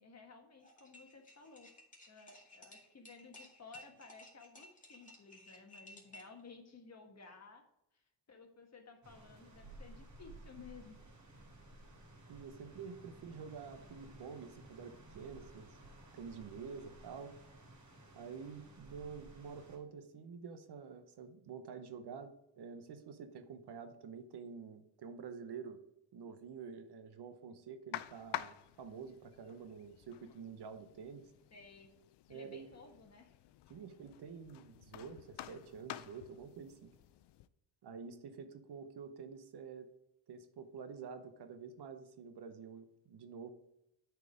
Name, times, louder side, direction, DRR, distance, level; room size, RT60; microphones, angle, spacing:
voice 1, 0.0-1.7 2.1-7.6 7.9-11.0 31.5-31.9 32.3-33.3, left 4 dB, 35° left, 4 dB, 1.4 m, -56 dB
sound 1, 0.6-6.4, left 1 dB, 15° left, 2.2 m, -57 dB
sound 2, 9.0-19.8, right 1 dB, 35° right, 3.1 m, -56 dB
voice 2, 12.3-15.7 16.1-17.3 18.1-25.8 26.1-31.3 32.3-32.7 33.7-36.9 37.8-39.9 40.3-43.5, right 6 dB, 55° right, 9 dB, 1.0 m, -48 dB
sound 3, 27.9-37.5, left 13 dB, 60° left, 0.5 m, -50 dB
8.3 x 4.7 x 5.1 m, 0.83 s
cardioid pair, 95°, 48 cm